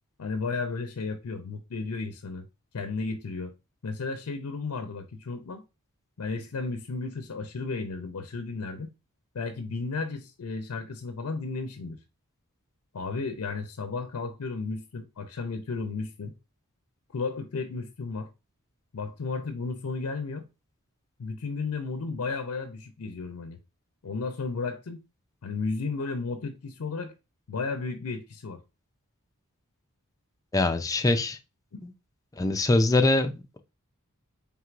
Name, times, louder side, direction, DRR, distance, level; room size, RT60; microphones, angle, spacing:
voice 1, 0.2-2.5 2.7-3.5 3.8-5.6 6.2-8.9 9.3-12.0 12.9-16.3 17.1-18.3 18.9-20.5 21.2-23.6 24.0-25.0 25.4-27.1 27.5-28.6 31.7-31.8, left 4 dB, 75° left, 0.5 m, -33 dB
voice 2, 30.5-31.4 31.8-31.9 32.3-33.6, left 2 dB, 15° left, 0.4 m, -23 dB
4.5 x 3.6 x 2.4 m
head